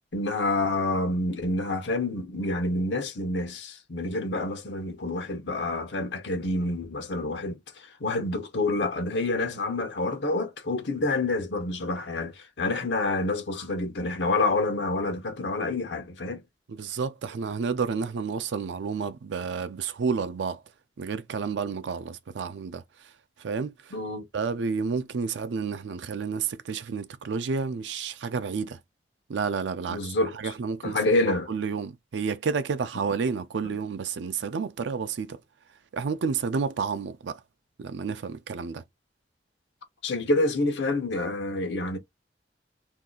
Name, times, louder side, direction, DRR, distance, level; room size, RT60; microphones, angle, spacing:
voice 1, 0.1-16.4 23.9-24.3 29.9-30.5 30.8-31.5 33.6-33.7 40.0-42.0, left 2 dB, 85° left, 0.8 m, -28 dB
voice 2, 16.7-20.6 21.0-22.8 23.4-23.9 24.3-28.8 29.3-30.0 30.3-31.0 31.3-35.4 35.9-37.4 37.8-38.8, right 5 dB, 90° right, 0.4 m, -30 dB
2.7 x 2.3 x 3.6 m
head